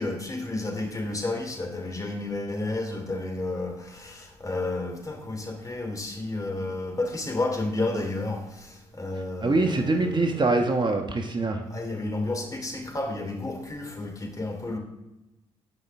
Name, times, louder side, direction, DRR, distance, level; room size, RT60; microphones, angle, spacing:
voice 1, 0.0-10.4 11.7-14.8, left 2 dB, 25° left, 2 dB, 3.0 m, -31 dB
voice 2, 9.4-11.6, right 2 dB, 30° right, 4 dB, 1.2 m, -24 dB
15.0 x 5.6 x 3.6 m, 0.98 s
hypercardioid pair, 50°, 14 cm